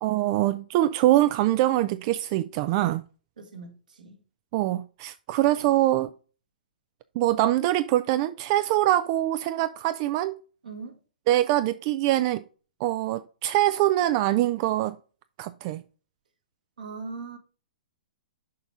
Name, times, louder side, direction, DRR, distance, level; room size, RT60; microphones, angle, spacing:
voice 1, 0.0-3.0 4.5-6.1 7.2-10.4 11.3-12.4 12.8-15.0 15.4-15.8, right 14 dB, 35° right, 0.4 m, -24 dB
voice 2, 3.4-4.2 10.6-11.0 16.8-17.4, right 4 dB, 65° right, 2.0 m, -40 dB
6.7 x 5.4 x 4.8 m
figure-of-eight pair, 115°, 5 cm